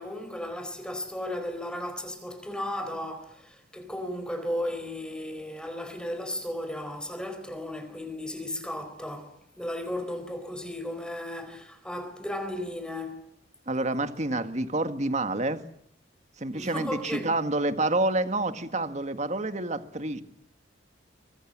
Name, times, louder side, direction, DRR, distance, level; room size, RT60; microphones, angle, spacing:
voice 1, 0.0-13.2 16.5-17.3, left 1 dB, 5° left, 4.2 m, -35 dB
voice 2, 13.7-15.6 16.4-20.2, right 2 dB, 40° right, 1.8 m, -28 dB
24.0 x 21.0 x 8.9 m
head